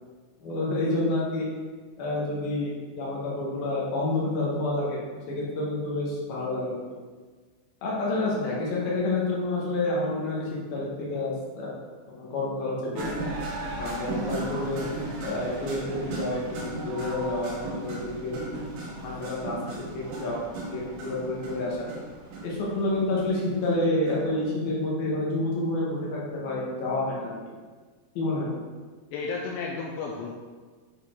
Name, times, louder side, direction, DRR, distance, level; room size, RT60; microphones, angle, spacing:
voice 1, 0.4-1.5 2.0-5.0 5.3-6.8 7.8-13.0 13.8-14.8 15.2-18.5 19.0-20.4 20.7-21.8 22.4-27.3 28.2-28.5, left 2 dB, 60° left, -5 dB, 2.8 m, -29 dB
sound 1, 13.0-24.8, right 2 dB, 70° right, 2.1 m, -36 dB
voice 2, 29.1-30.3, left 4 dB, 85° left, -1 dB, 2.6 m, -32 dB
9.0 x 4.7 x 3.8 m, 1.4 s
omnidirectional pair, 5.7 m